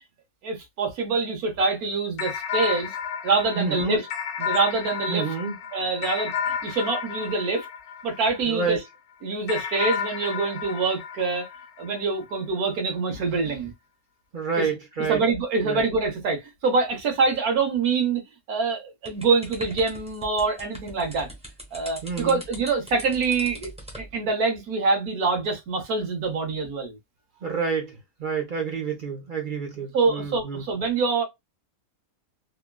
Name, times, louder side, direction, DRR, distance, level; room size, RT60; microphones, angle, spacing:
voice 1, 0.4-2.9 3.2-4.1 4.4-5.3 5.7-7.7 8.0-8.8 9.2-11.5 11.8-13.7 14.6-14.7 15.1-18.2 18.5-21.3 21.7-23.7 24.0-27.0 29.9-31.2, right 4 dB, 85° right, 1.5 m, -25 dB
sound 1, 2.2-8.8 9.5-12.2, left 7 dB, 70° left, 0.9 m, -32 dB
voice 2, 3.6-4.0 5.1-5.6 8.5-8.8 14.3-15.2 15.6-15.8 22.0-22.4 27.4-30.6, right 5 dB, 45° right, 0.7 m, -28 dB
sound 2, 19.1-24.1, right 1 dB, 5° right, 0.8 m, -41 dB
3.5 x 2.2 x 2.2 m
omnidirectional pair, 1.5 m